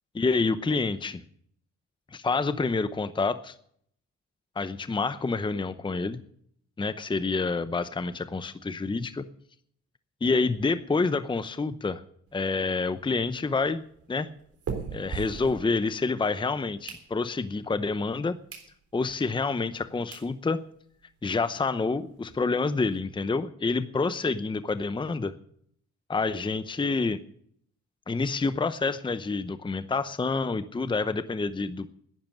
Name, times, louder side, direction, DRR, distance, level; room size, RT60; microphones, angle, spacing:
voice 1, 0.1-1.2 2.1-3.5 4.6-6.2 6.8-9.2 10.2-12.0 12.3-14.3 14.9-18.3 18.9-20.6 21.2-25.3 26.1-27.2 28.1-31.9, left 4 dB, 15° left, 12 dB, 0.8 m, -28 dB
sound 1, 12.3-16.2 16.6-17.6 18.1-18.2 18.5-18.7 19.2-19.3 19.8-19.9 20.1-20.3 20.7-20.8 21.0-21.1 21.4-21.5 21.8-23.0, right 6 dB, 50° right, 3.7 m, -41 dB
11.0 x 10.5 x 9.3 m, 0.66 s
cardioid pair, 90°, 30 cm